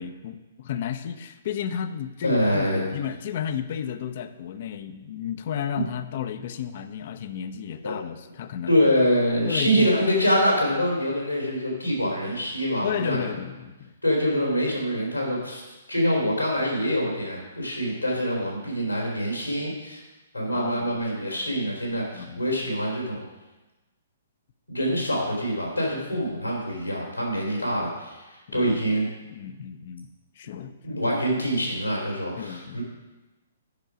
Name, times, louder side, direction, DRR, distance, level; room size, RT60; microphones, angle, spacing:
voice 1, 0.0-8.8 9.4-9.9 12.8-13.9 20.5-21.0 22.1-22.5 28.5-28.7 29.3-30.1 30.4-31.0 32.3-32.8, left 9 dB, 45° left, 11 dB, 0.6 m, -33 dB
voice 2, 2.2-2.9 5.7-5.8 7.8-8.0 8.7-13.3 14.0-15.6 15.9-20.0 20.3-23.2 24.7-28.2 28.5-29.1 30.8-32.8, equal, 90° left, -3 dB, 3.5 m, -25 dB
9.4 x 6.3 x 5.0 m, 1.1 s
figure-of-eight pair, 120°, 0 cm